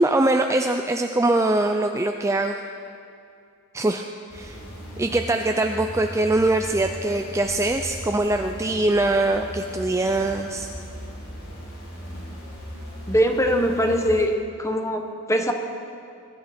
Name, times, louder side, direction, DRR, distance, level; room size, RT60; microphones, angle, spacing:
voice 1, 0.0-2.6 3.7-4.1 4.3-4.6 5.0-10.7, right 2 dB, 15° right, 5 dB, 0.4 m, -22 dB
sound 1, 4.3-14.3, equal, 80° left, 4.6 m, -38 dB
voice 2, 13.1-14.3 14.6-15.5, equal, 15° left, 4 dB, 1.1 m, -22 dB
21.5 x 12.0 x 4.3 m, 2.4 s
head